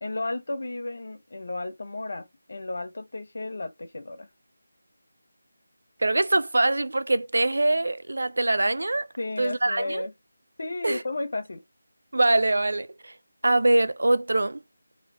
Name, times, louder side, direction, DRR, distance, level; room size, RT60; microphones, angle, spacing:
voice 1, 0.0-4.3 9.2-10.1 10.6-11.6, left 2 dB, 60° left, 0.9 m, -33 dB
voice 2, 6.0-9.1 9.4-10.0 10.8-11.0 12.1-13.1 13.4-14.6, right 2 dB, 75° right, 0.4 m, -23 dB
3.1 x 3.0 x 2.7 m
figure-of-eight pair, 165°, 0 cm